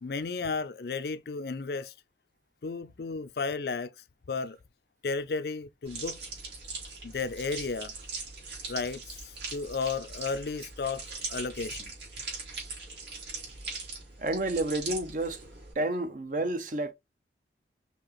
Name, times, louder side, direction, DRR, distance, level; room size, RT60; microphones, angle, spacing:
voice 1, 0.0-1.9 2.6-3.9 4.3-4.6 5.0-6.2 7.0-7.9 8.7-11.0 11.3-11.9, left 4 dB, 60° left, 0.5 m, -33 dB
sound 1, 5.8-15.7, right 4 dB, 70° right, 3.1 m, -41 dB
voice 2, 14.2-15.4 15.8-16.9, right 2 dB, 45° right, 0.7 m, -30 dB
5.7 x 2.9 x 3.0 m
head